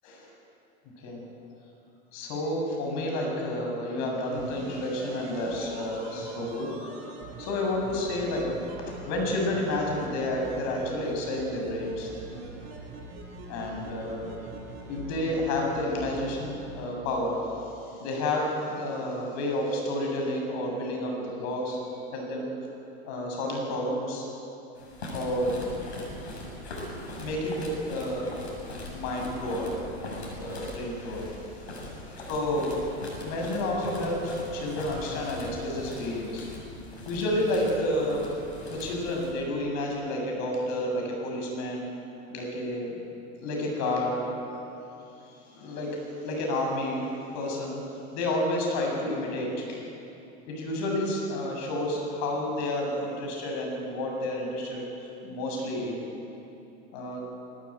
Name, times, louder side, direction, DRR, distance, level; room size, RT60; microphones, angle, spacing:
voice 1, 2.1-6.7 7.4-12.1 13.5-14.3 14.8-17.7 18.0-21.8 22.1-22.5 23.1-24.2 25.1-25.6 27.2-28.4 28.9-29.8 30.0-31.9 32.3-32.8 33.2-36.5 37.1-38.3 38.7-41.9 42.3-43.0 43.4-44.6 45.5-47.0 47.3-47.8 48.1-49.8 50.5-56.1 56.9-57.2, left 1 dB, 55° left, 0 dB, 8.0 m, -30 dB
sound 1, 4.3-16.9 17.1-17.2, right 3 dB, 55° right, 6.5 m, -43 dB
sound 2, 24.8-39.3, left 1 dB, 80° left, 6.8 m, -40 dB
21.0 x 18.5 x 9.1 m, 2.8 s
hypercardioid pair, 80°, 33 cm